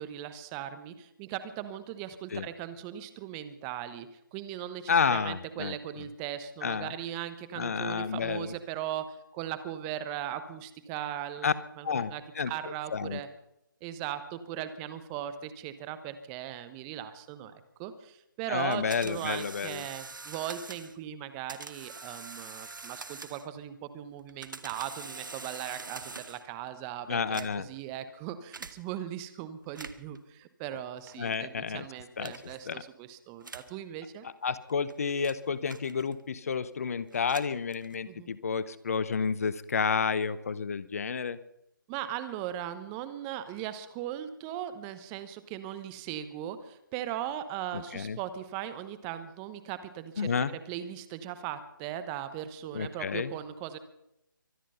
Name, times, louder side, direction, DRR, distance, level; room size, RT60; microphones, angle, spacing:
voice 1, 0.0-11.5 11.8-13.3 13.8-34.3 38.1-38.3 41.9-53.8, right 11 dB, 15° right, 12 dB, 1.0 m, -38 dB
voice 2, 4.9-6.0 6.6-6.9 7.5-8.5 11.4-11.5 11.8-12.5 12.9-13.2 18.5-19.8 27.1-27.7 31.2-31.8 32.2-32.8 34.2-41.4 47.7-48.2 50.2-50.5 52.7-53.3, left 6 dB, 45° left, 16 dB, 0.9 m, -30 dB
sound 1, 18.7-21.0 21.5-23.6 24.2-26.5 27.2-27.8 28.5-28.8 29.6-30.2 31.1-31.4 32.2-32.6 33.4-33.8 34.6-36.3 37.1-38.1, right 4 dB, 70° right, 1.5 m, -45 dB
24.0 x 10.0 x 5.6 m, 0.82 s
figure-of-eight pair, 155°, 11 cm